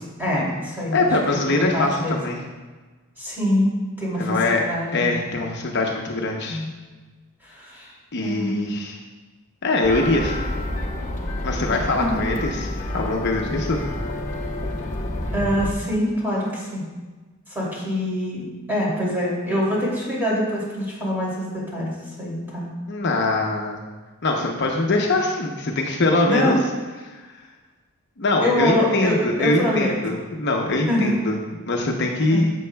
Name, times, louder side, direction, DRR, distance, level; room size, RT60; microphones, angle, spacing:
voice 1, 0.2-1.4 1.7-2.1 3.2-4.3 4.7-5.2 6.4-6.7 7.5-7.9 8.2-8.5 12.0-12.2 15.3-16.8 17.5-21.9 22.2-22.7 26.2-26.5 28.4-29.9 30.9-31.1 32.3-32.4, left 1 dB, 10° right, -6 dB, 2.7 m, -24 dB
voice 2, 0.9-2.4 4.2-4.6 4.9-6.6 8.1-9.0 9.6-10.4 11.4-13.8 22.9-23.8 24.2-26.6 27.0-27.2 28.2-32.5, left 2 dB, 55° left, 1 dB, 0.8 m, -23 dB
sound 1, 9.8-15.7, left 1 dB, 35° left, 1.0 m, -29 dB
11.0 x 7.6 x 2.3 m, 1.3 s
head